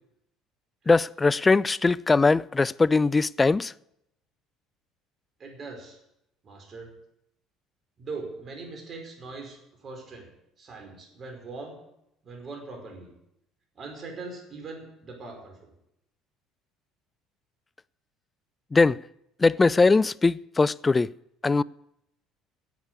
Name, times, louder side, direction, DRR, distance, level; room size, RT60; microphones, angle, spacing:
voice 1, 0.9-3.7 18.7-19.0 19.4-21.1 21.4-21.6, left 3 dB, 25° left, 0.4 m, -21 dB
voice 2, 5.4-6.0 6.4-6.9 8.0-10.3 10.6-11.8 12.2-13.1 13.7-15.7, right 3 dB, 45° right, 4.9 m, -41 dB
11.0 x 8.2 x 9.6 m
hypercardioid pair, 70°, 0 cm